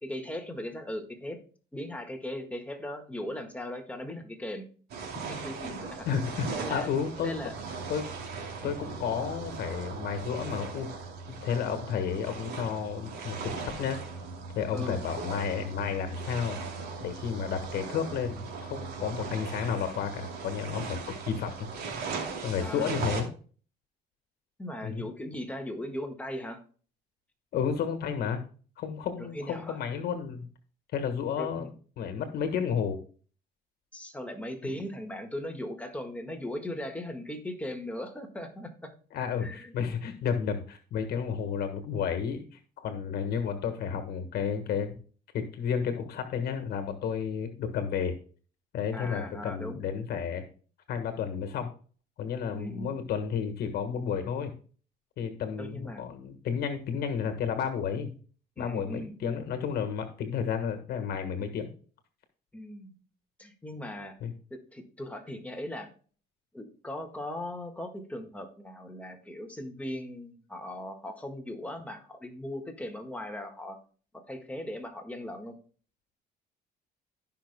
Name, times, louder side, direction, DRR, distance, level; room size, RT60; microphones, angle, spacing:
voice 1, 0.0-1.4 1.7-4.7 5.3-6.9 7.2-7.6 14.7-15.0 22.6-23.0 24.6-26.6 29.2-29.8 31.3-31.7 33.9-38.9 39.4-39.8 48.9-49.9 52.5-53.0 55.6-56.0 58.6-59.4 62.5-63.0 63.4-64.2 64.5-65.9 66.5-73.8 74.1-75.6, left 1 dB, 10° left, 3 dB, 1.6 m, -38 dB
sound 1, 4.9-23.2, right 4 dB, 75° right, 2.6 m, -38 dB
voice 2, 6.0-7.4 7.9-10.9 11.3-14.0 14.5-16.6 17.0-21.5 22.4-23.3 24.8-25.1 27.5-28.4 28.8-30.4 30.9-31.7 32.0-33.0 34.6-34.7 39.1-44.9 45.3-48.1 48.7-50.5 50.9-51.7 52.2-54.5 55.2-58.1 58.6-61.7 64.2-64.3, left 7 dB, 70° left, 7 dB, 1.4 m, -32 dB
16.0 x 5.7 x 2.2 m, 0.41 s
cardioid pair, 110°, 17 cm